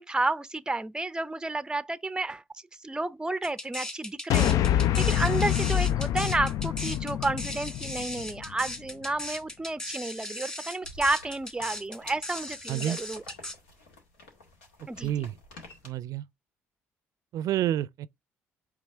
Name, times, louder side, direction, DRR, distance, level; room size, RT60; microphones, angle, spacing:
voice 1, 0.0-2.4 2.8-13.2 14.9-15.1, right 2 dB, 10° right, 0.5 m, -31 dB
sound 1, 3.4-13.5, left 1 dB, 15° left, 2.2 m, -38 dB
sound 2, 4.3-8.7, left 11 dB, 60° left, 0.4 m, -26 dB
sound 3, 10.8-15.9, left 1 dB, 80° left, 2.0 m, -50 dB
voice 2, 12.7-13.0 15.0-15.3 15.8-16.2 17.3-18.1, right 12 dB, 60° right, 0.5 m, -29 dB
8.4 x 3.3 x 3.5 m
hypercardioid pair, 50°, 7 cm